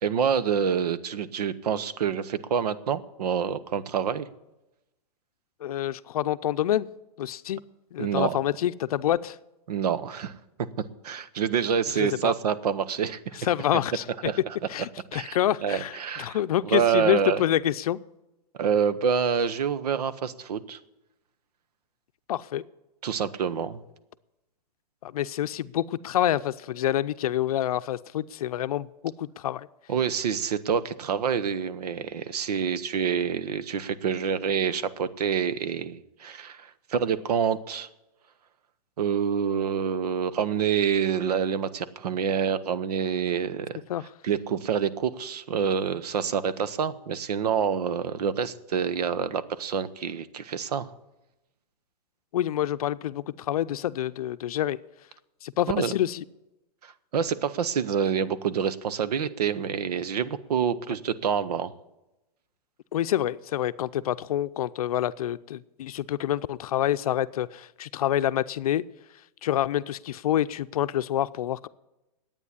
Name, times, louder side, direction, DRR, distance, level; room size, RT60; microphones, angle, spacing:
voice 1, 0.0-4.3 8.0-8.4 9.7-10.3 11.0-13.4 14.2-14.6 15.1-16.4 16.6-17.4 18.6-20.8 23.0-23.8 29.9-37.9 39.0-43.8 44.2-50.9 55.7-55.9 56.8-61.7, right 7 dB, 80° right, 14 dB, 1.1 m, -27 dB
voice 2, 5.6-6.9 7.2-7.6 7.9-9.4 11.9-12.3 13.4-14.0 14.7-18.0 22.3-22.6 25.0-29.7 43.9-44.1 52.3-54.8 55.4-56.2 62.9-68.8 69.4-71.7, left 12 dB, 70° left, 13 dB, 0.6 m, -27 dB
11.0 x 9.0 x 9.8 m, 0.95 s
supercardioid pair, 165°, 20 cm